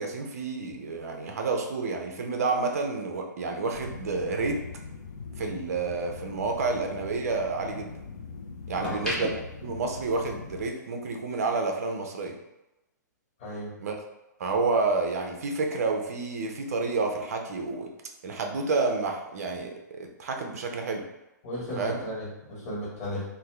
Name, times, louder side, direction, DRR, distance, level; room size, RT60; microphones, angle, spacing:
voice 1, 0.0-4.6 5.4-7.9 8.7-12.3 13.8-14.1 14.4-17.9 18.2-21.1 21.8-22.0, right 3 dB, 55° right, 3 dB, 0.5 m, -29 dB
sound 1, 3.7-10.7, left 5 dB, 65° left, 0.4 m, -42 dB
sound 2, 4.0-6.3 6.7-8.2 8.6-10.7 11.0-11.3, equal, 10° left, 0.6 m, -39 dB
voice 2, 8.7-9.1 13.4-13.7 21.4-23.2, equal, 40° left, -8 dB, 1.2 m, -35 dB
2.6 x 2.2 x 3.2 m, 0.96 s
figure-of-eight pair, 115°, 10 cm